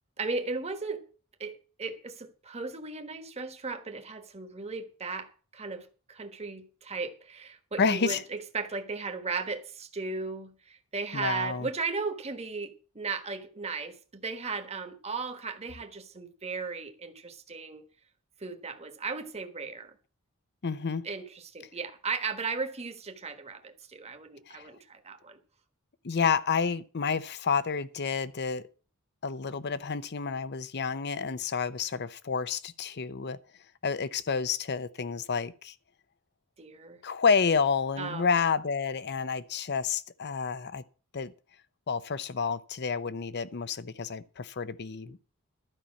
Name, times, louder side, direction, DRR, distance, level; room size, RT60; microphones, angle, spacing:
voice 1, 0.2-1.1 1.4-17.8 18.4-19.9 21.0-25.4 36.6-37.0 38.0-38.3, right 4 dB, 30° right, 1.4 m, -36 dB
voice 2, 7.8-8.2 11.1-11.7 20.6-21.0 24.5-24.7 26.0-28.6 29.2-33.4 33.8-35.7 37.0-40.8 41.1-41.3 41.9-45.2, left 5 dB, 50° left, 0.7 m, -29 dB
12.0 x 5.6 x 8.3 m
head